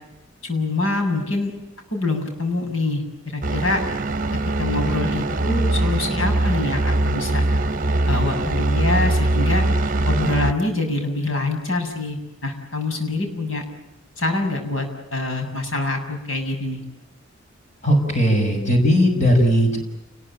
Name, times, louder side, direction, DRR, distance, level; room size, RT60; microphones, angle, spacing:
voice 1, 0.4-1.5 1.9-3.8 4.6-7.4 8.1-9.7 10.0-13.6 14.2-14.9 15.1-16.8, left 2 dB, 75° left, 4 dB, 7.3 m, -25 dB
sound 1, 3.4-10.5, right 2 dB, 40° right, 1.0 m, -22 dB
voice 2, 17.8-19.8, equal, 35° left, 3 dB, 6.4 m, -17 dB
29.5 x 21.0 x 9.0 m, 0.92 s
head